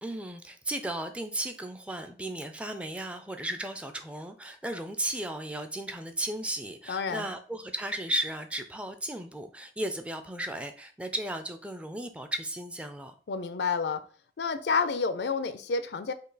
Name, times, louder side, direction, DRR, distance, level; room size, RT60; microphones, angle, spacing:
voice 1, 0.0-13.2, right 1 dB, 5° right, 0.3 m, -35 dB
voice 2, 6.9-7.3 13.3-14.0 14.4-16.1, left 4 dB, 75° left, 0.5 m, -29 dB
5.3 x 2.3 x 3.9 m
head